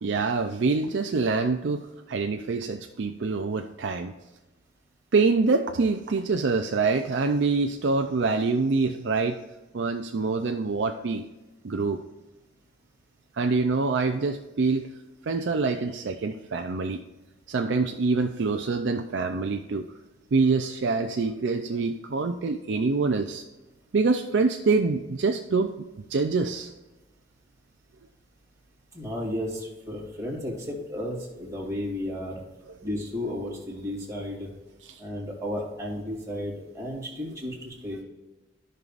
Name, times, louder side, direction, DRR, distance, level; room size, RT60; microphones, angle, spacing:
voice 1, 0.0-4.1 5.1-9.4 9.7-11.2 11.6-12.0 13.3-14.9 15.2-17.0 17.5-19.8 20.3-23.4 23.9-25.7 26.1-26.7 34.9-35.0, right 4 dB, 70° right, 4 dB, 0.5 m, -25 dB
voice 2, 28.9-32.4 32.8-34.5 35.0-38.0, left 1 dB, 15° right, -4 dB, 2.5 m, -33 dB
14.0 x 5.5 x 2.5 m, 1.1 s
head